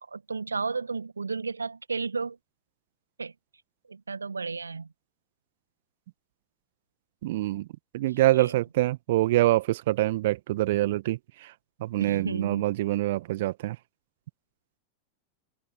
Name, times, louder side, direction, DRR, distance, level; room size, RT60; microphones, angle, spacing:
voice 1, 0.1-2.4 3.2-3.3 3.9-4.9 8.3-8.5 12.0-12.7, right 4 dB, 75° right, 1.8 m, -33 dB
voice 2, 7.2-7.7 7.9-11.5 11.8-13.8, right 16 dB, 55° right, 1.9 m, -25 dB
figure-of-eight pair, 90°, 0 cm